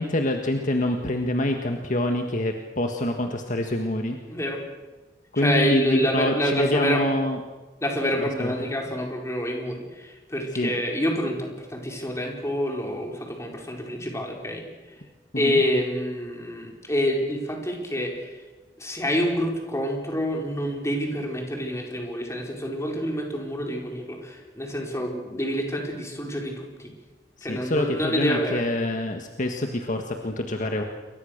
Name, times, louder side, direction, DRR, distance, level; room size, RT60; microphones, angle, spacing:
voice 1, 0.0-4.2 5.3-7.4 8.2-8.5 10.5-10.7 15.3-15.6 27.4-30.8, left 1 dB, 45° left, 4 dB, 1.7 m, -26 dB
voice 2, 4.3-4.6 5.3-7.0 7.8-14.6 15.4-18.4 18.8-26.9 27.4-28.6, equal, 15° left, 1 dB, 4.9 m, -27 dB
29.0 x 23.0 x 6.7 m, 1.2 s
head